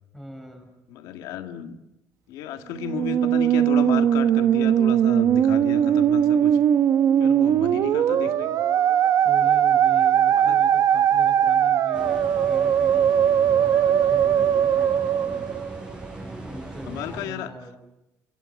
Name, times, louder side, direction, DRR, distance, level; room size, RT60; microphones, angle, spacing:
voice 1, 0.1-0.7 7.2-7.7 9.2-15.5 16.2-17.7, equal, ahead, 4 dB, 7.1 m, -41 dB
voice 2, 0.9-1.8 2.3-6.6 7.2-8.6 10.3-10.6 16.9-17.5, left 9 dB, 85° left, 7 dB, 1.9 m, -33 dB
Musical instrument, 2.8-16.1, right 9 dB, 60° right, 1.1 m, -20 dB
sound 1, 11.9-17.3, right 2 dB, 15° right, 7.2 m, -39 dB
27.0 x 23.5 x 7.4 m, 0.92 s
cardioid pair, 125°, 6 cm